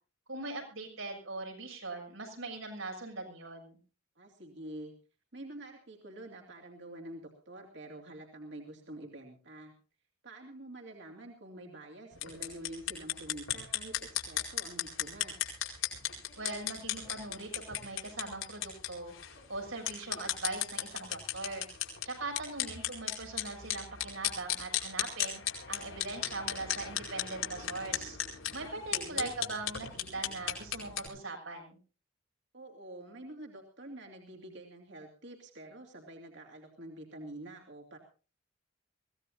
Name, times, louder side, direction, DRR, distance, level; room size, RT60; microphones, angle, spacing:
voice 1, 0.3-3.8 16.4-19.1 19.5-21.6 22.0-25.4 25.7-28.2 28.5-29.9 30.1-31.8, right 2 dB, 90° right, 2 dB, 7.1 m, -41 dB
voice 2, 4.2-4.9 5.3-9.7 10.2-15.4 28.4-29.3 32.5-38.0, right 1 dB, 60° right, 2 dB, 2.7 m, -47 dB
sound 1, 12.1-31.1, left 10 dB, 90° left, 4.7 m, -36 dB
23.5 x 17.0 x 2.7 m, 0.36 s
head